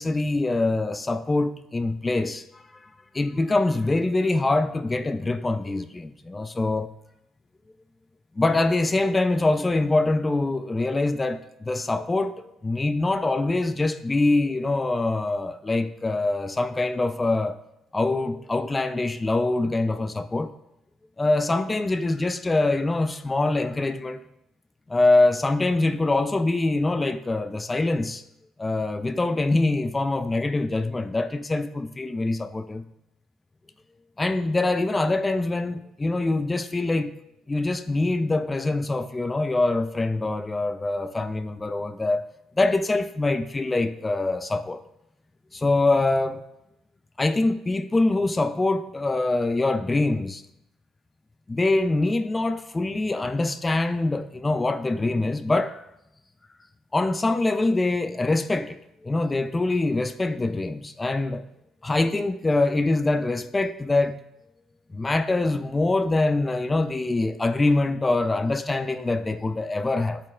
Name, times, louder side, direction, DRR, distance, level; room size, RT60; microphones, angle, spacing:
voice 1, 0.0-2.9 3.1-6.9 8.4-12.3 12.6-17.6 17.9-20.5 21.2-24.2 24.9-28.2 28.6-32.8 34.2-37.1 37.5-42.2 42.6-44.8 45.5-46.4 47.2-50.4 51.5-55.9 56.9-61.4 61.8-64.2 64.9-70.2, left 2 dB, 20° left, 0.5 m, -24 dB
12.0 x 4.3 x 2.4 m
supercardioid pair, 65°, 0 cm